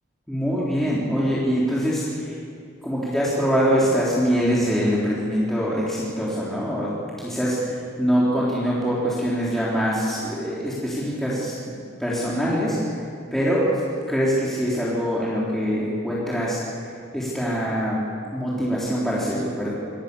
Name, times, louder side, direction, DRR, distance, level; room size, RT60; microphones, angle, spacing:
voice 1, 0.3-2.4 2.8-6.9 7.2-13.8 14.1-18.0 18.3-19.7, equal, ahead, -8 dB, 4.2 m, -24 dB
26.5 x 25.5 x 7.2 m, 2.5 s
head